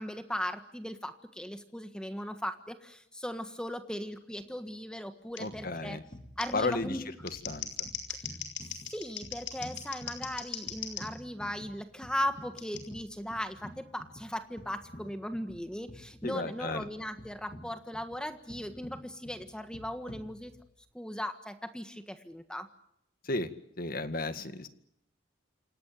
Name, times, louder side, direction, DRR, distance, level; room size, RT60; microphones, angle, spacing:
voice 1, 0.0-6.0 6.4-7.1 8.1-8.2 8.9-20.5 20.9-22.7, equal, 5° left, 8 dB, 1.5 m, -38 dB
Scissors, 5.4-5.5 6.4-6.5 7.1-11.1 12.6-12.8, left 8 dB, 75° left, 5.5 m, -39 dB
voice 2, 5.4-6.0 6.5-7.0 7.5-7.9 16.2-16.9 23.2-23.5 23.8-24.7, left 2 dB, 50° left, 10 dB, 2.0 m, -33 dB
sound 1, 5.5-20.9, equal, 30° left, 1.9 m, -50 dB
28.0 x 18.0 x 9.2 m, 0.75 s
head